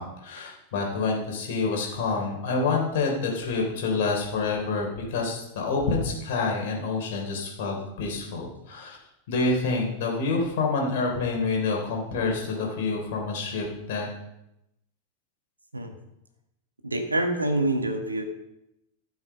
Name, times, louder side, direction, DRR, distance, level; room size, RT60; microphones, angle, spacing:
voice 1, 0.0-9.0 9.3-14.1, left 3 dB, 55° left, 0 dB, 3.6 m, -27 dB
voice 2, 16.8-18.2, right 2 dB, 80° right, 5 dB, 1.6 m, -26 dB
13.5 x 7.3 x 5.4 m, 0.86 s
figure-of-eight pair, 90°, 0 cm